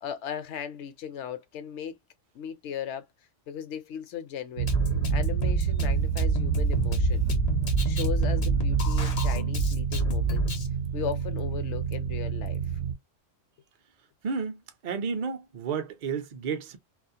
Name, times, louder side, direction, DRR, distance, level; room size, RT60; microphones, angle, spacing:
voice 1, 0.0-2.0 2.3-3.1 3.5-4.7 5.1-7.3 7.8-10.5 10.9-12.6, left 8 dB, 70° left, 0.8 m, -37 dB
sound 1, 4.6-12.9, right 8 dB, 75° right, 0.9 m, -28 dB
Drum kit, 4.7-10.7, right 1 dB, 50° left, 0.5 m, -28 dB
voice 2, 14.2-16.8, right 5 dB, 50° right, 0.5 m, -32 dB
2.4 x 2.0 x 2.6 m
omnidirectional pair, 1.3 m